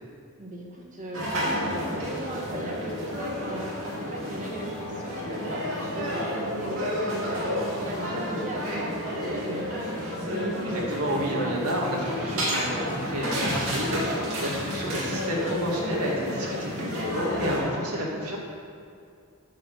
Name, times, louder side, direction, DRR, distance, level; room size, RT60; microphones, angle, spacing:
voice 1, 0.4-10.0 17.6-18.3, right 2 dB, 35° right, -2 dB, 1.5 m, -37 dB
sound 1, 1.1-17.6, equal, 60° right, 2.4 m, -31 dB
Singing / Musical instrument, 2.3-11.8, left 2 dB, 30° left, 0.9 m, -47 dB
voice 2, 10.6-18.4, equal, 80° right, -2 dB, 1.9 m, -30 dB
9.9 x 4.6 x 6.7 m, 2.3 s
head